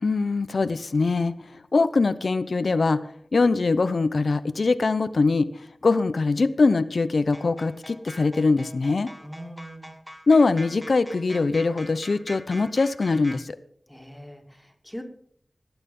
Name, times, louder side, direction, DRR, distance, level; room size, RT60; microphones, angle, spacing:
voice 1, 0.0-3.1 3.3-9.1 10.3-13.6, left 3 dB, 80° left, 13 dB, 0.7 m, -22 dB
sound 1, 7.3-13.4, equal, 5° right, 1.5 m, -43 dB
voice 2, 9.2-9.9 13.9-15.0, equal, 10° left, 4 dB, 2.6 m, -41 dB
18.5 x 9.0 x 5.4 m, 0.64 s
wide cardioid pair, 55°, 0 cm